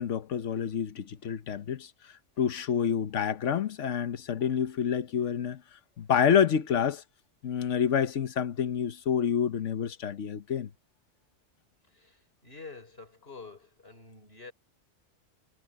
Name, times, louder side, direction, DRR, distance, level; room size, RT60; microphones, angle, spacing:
voice 1, 0.0-5.6 6.0-7.0 7.4-10.7, left 8 dB, 90° left, 1.3 m, -28 dB
voice 2, 11.9-14.5, left 4 dB, 55° left, 5.3 m, -48 dB
omnidirectional pair, 1.2 m